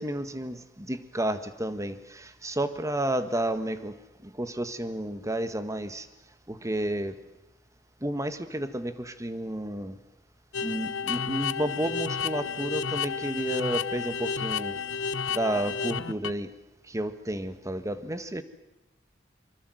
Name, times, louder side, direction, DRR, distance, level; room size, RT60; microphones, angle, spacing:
voice 1, 0.0-4.0 4.2-6.1 6.5-7.1 8.0-10.0 10.6-14.8 15.3-16.5 16.8-18.4, right 1 dB, 15° right, 1.6 m, -31 dB
sound 1, 10.5-16.3, left 6 dB, 85° left, 0.9 m, -31 dB
24.5 x 24.5 x 7.9 m
head